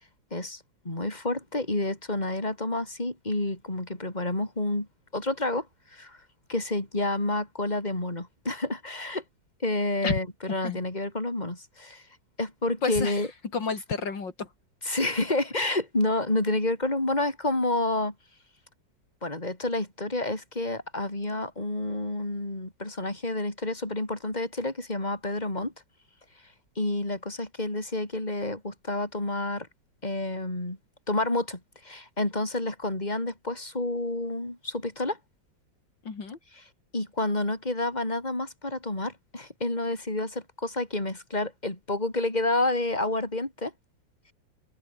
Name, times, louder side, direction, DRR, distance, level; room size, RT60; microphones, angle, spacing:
voice 1, 0.3-4.9 5.1-5.7 5.9-6.2 6.5-9.2 9.6-12.0 12.4-13.3 14.8-18.1 19.2-25.7 26.8-29.7 30.0-30.8 31.1-35.2 36.9-43.7, left 2 dB, 20° left, 4.9 m, -29 dB
voice 2, 12.8-13.3 13.5-14.5 36.1-36.4, left 4 dB, 75° left, 3.6 m, -30 dB
open air
omnidirectional pair, 2.0 m